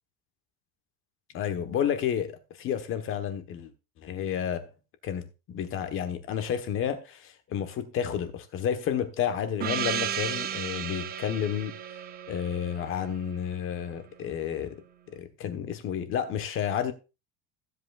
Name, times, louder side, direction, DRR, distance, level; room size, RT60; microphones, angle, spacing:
voice 1, 1.3-3.7 4.0-4.7 5.0-11.8 12.3-14.8 15.1-16.9, left 9 dB, 40° left, 1.3 m, -31 dB
Gong, 9.6-13.9, right 10 dB, 25° right, 0.7 m, -34 dB
15.5 x 8.1 x 2.5 m
cardioid pair, 170°, 34 cm